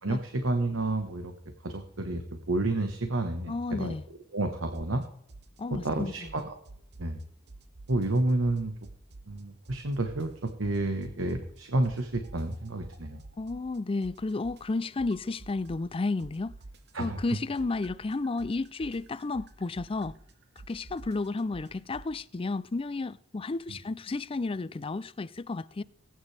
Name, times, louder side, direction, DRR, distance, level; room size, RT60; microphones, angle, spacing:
voice 1, 0.0-1.3 1.6-2.2 2.5-3.9 4.3-5.0 5.7-6.4 7.0-7.2 7.9-8.7 9.3-13.2 16.9-17.2, right 2 dB, 80° right, 1.4 m, -30 dB
voice 2, 3.5-4.0 5.6-6.3 13.4-16.6 17.0-20.2 20.7-25.8, left 3 dB, 30° left, 0.4 m, -32 dB
sound 1, 4.7-5.0 5.3-7.2 7.5-9.4 9.7-11.6 11.8-22.1, right 2 dB, 55° right, 1.1 m, -49 dB
19.0 x 9.7 x 3.4 m
head